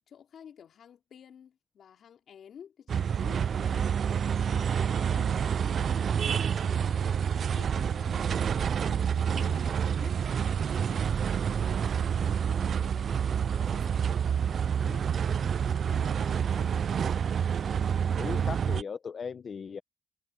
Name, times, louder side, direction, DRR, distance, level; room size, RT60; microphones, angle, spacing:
voice 1, 0.0-6.2 6.6-15.1 15.4-16.9, left 8 dB, 60° left, 2.8 m, -52 dB
sound 1, 2.9-18.8, right 7 dB, 55° right, 0.3 m, -28 dB
voice 2, 18.2-19.8, left 6 dB, 45° left, 1.1 m, -37 dB
cardioid pair, 90°, 0 cm